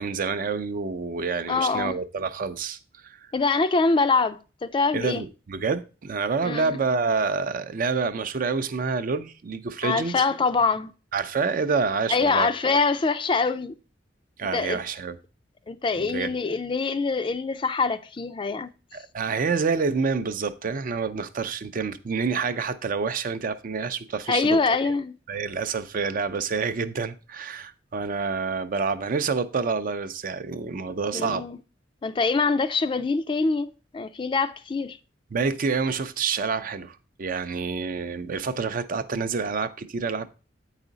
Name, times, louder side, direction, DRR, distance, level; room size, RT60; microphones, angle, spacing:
voice 1, 0.0-3.3 4.9-10.2 11.1-12.5 14.4-15.2 16.0-16.3 18.9-24.6 24.8-24.9 25.3-31.4 35.3-40.3, right 5 dB, 50° right, 0.5 m, -28 dB
voice 2, 1.5-2.0 3.3-5.2 6.4-6.8 9.8-10.9 12.1-13.7 14.5-14.8 15.7-18.7 24.3-25.1 31.1-31.6 32.0-35.0, left 4 dB, 25° left, 0.4 m, -24 dB
8.2 x 4.9 x 3.9 m
head